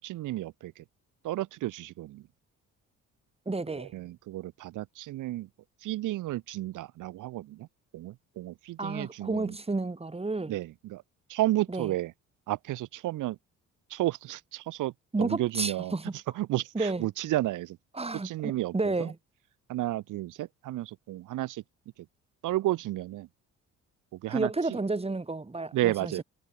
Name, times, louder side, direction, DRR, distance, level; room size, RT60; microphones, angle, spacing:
voice 1, 0.0-0.8 1.2-2.3 3.7-5.5 5.8-7.7 7.9-9.6 10.5-11.0 11.3-12.1 12.5-13.4 13.9-14.9 15.2-17.8 18.1-19.1 19.7-21.6 22.4-23.3 24.1-24.8 25.7-26.2, right 16 dB, 90° right, 3.9 m, -32 dB
voice 2, 3.5-3.9 8.8-10.5 11.7-11.9 15.1-16.1 16.7-17.0 18.0-19.1 24.3-26.1, right 3 dB, 20° right, 6.1 m, -31 dB
cardioid pair, 90°, 30 cm